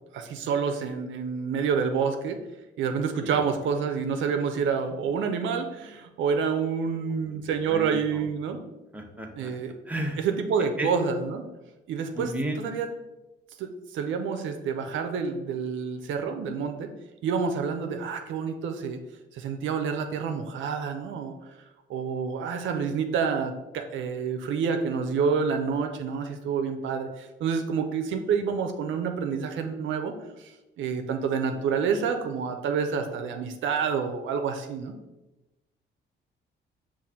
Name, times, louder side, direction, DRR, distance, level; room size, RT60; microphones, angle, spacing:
voice 1, 0.1-2.4 2.8-8.6 9.4-9.7 10.2-11.4 11.9-12.3 12.6-12.9 13.6-16.9 17.2-19.0 19.3-21.3 21.9-35.0, right 6 dB, 75° right, 6 dB, 0.5 m, -28 dB
voice 2, 7.7-8.2 8.9-9.5 9.9-10.2 10.8-10.9 12.2-12.6, right 1 dB, 5° right, 1 dB, 0.8 m, -33 dB
5.4 x 2.5 x 3.6 m, 1.0 s
cardioid pair, 90°, 20 cm